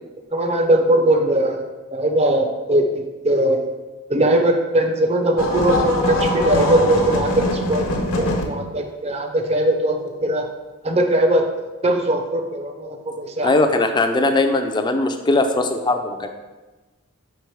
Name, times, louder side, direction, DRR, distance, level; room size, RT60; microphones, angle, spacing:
voice 1, 0.3-1.6 1.9-3.6 4.1-10.4 10.8-11.4 11.8-13.5, right 1 dB, 30° right, 5 dB, 0.6 m, -20 dB
sound 1, 5.4-8.4, left 2 dB, 75° left, 1.0 m, -22 dB
voice 2, 13.4-16.3, left 2 dB, 20° left, 6 dB, 0.4 m, -19 dB
4.9 x 4.7 x 4.6 m, 1.2 s
head